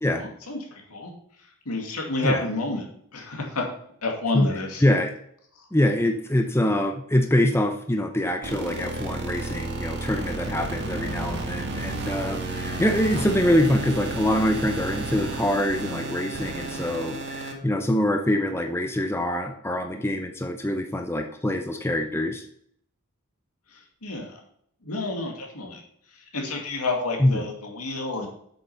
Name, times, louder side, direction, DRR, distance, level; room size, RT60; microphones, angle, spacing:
voice 1, 0.2-1.1 1.7-3.6 4.0-4.8 23.7-24.4 24.8-25.8 26.3-28.3, left 2 dB, 80° left, 1 dB, 2.3 m, -30 dB
voice 2, 4.8-5.1 5.7-22.4 27.2-27.4, left 1 dB, 10° left, 4 dB, 0.7 m, -24 dB
sound 1, 8.4-17.5, right 2 dB, 50° right, 1.6 m, -32 dB
7.8 x 6.7 x 5.6 m, 0.68 s
head